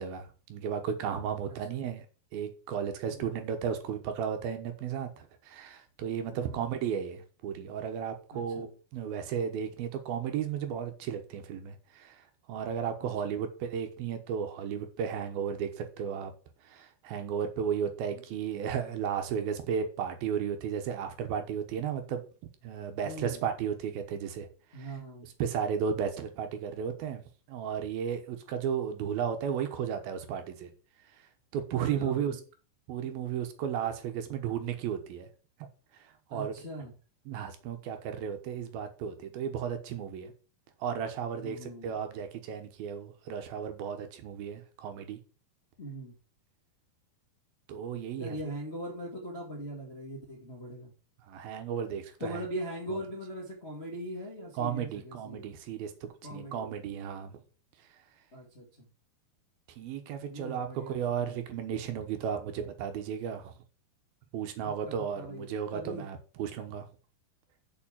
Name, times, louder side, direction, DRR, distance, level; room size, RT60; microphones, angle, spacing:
voice 1, 0.0-2.1 2.3-16.3 16.6-22.2 22.6-24.5 24.8-24.9 25.4-27.2 27.5-30.7 31.5-32.4 32.9-35.3 35.6-35.7 36.0-36.5 37.3-40.3 40.8-45.2 47.7-48.4 51.3-52.4 54.6-57.4 59.8-63.5 64.3-66.9, right 8 dB, 70° right, 7 dB, 2.8 m, -34 dB
voice 2, 1.4-1.8 3.1-3.4 6.3-6.6 8.3-8.7 13.0-13.3 18.1-18.2 23.0-23.4 24.7-25.3 31.9-32.4 36.3-36.9 41.4-42.0 45.8-46.2 48.2-50.9 52.2-55.5 56.2-56.7 58.3-58.9 60.3-61.4 64.6-66.0, right 1 dB, 35° left, -2 dB, 1.0 m, -41 dB
7.3 x 5.7 x 7.3 m, 0.37 s
omnidirectional pair, 4.6 m